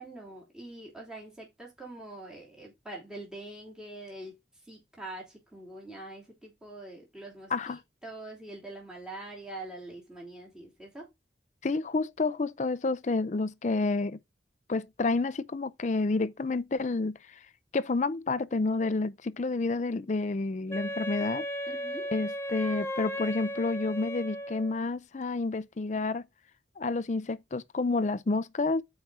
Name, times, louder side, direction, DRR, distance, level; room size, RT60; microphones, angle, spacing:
voice 1, 0.0-11.1 21.7-22.1, right 2 dB, 5° right, 2.9 m, -44 dB
voice 2, 11.6-14.2 14.7-17.4 17.7-21.4 22.1-26.2 26.8-28.8, left 3 dB, 40° left, 0.5 m, -29 dB
Wind instrument woodwind instrument, 20.7-24.8, equal, 15° left, 0.8 m, -35 dB
6.2 x 4.8 x 5.3 m
head